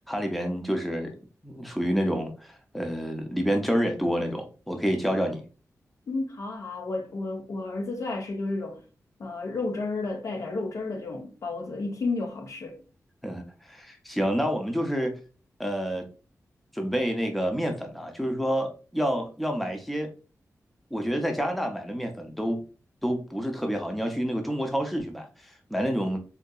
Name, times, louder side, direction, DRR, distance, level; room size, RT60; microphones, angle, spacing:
voice 1, 0.1-1.2 1.4-5.4 13.2-15.1 15.6-16.1 16.7-20.1 20.9-22.6 23.0-26.2, equal, ahead, 0.5 m, -28 dB
voice 2, 6.1-8.8 9.2-12.8, left 3 dB, 60° left, 0.6 m, -32 dB
3.7 x 2.7 x 2.2 m
wide cardioid pair, 145°, 6 cm